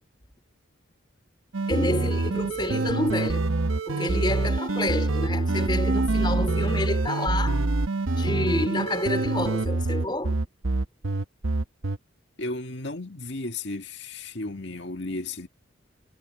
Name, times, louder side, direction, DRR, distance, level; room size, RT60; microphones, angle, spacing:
sound 1, 1.5-12.0, right 2 dB, 90° right, 1.0 m, -25 dB
voice 1, 1.7-3.5 3.9-7.6 8.1-10.4, left 1 dB, 25° left, 3.4 m, -29 dB
voice 2, 12.4-15.5, left 2 dB, 60° left, 2.0 m, -34 dB
head